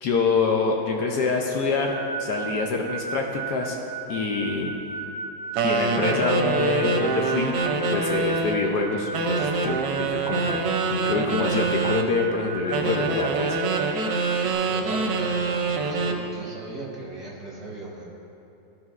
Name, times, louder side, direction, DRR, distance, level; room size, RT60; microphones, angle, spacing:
voice 1, 0.0-3.8 4.1-4.7 5.6-7.5 7.9-10.6 10.9-14.1, left 4 dB, 70° left, 1 dB, 1.0 m, -26 dB
sound 1, 1.9-14.5, right 5 dB, 50° left, 1.9 m, -35 dB
sound 2, 5.6-8.6 9.1-12.1 12.7-16.2, right 3 dB, 70° right, 1.2 m, -25 dB
voice 2, 14.4-18.0, right 2 dB, 15° right, -6 dB, 1.0 m, -37 dB
12.5 x 5.1 x 2.4 m, 2.8 s
omnidirectional pair, 2.2 m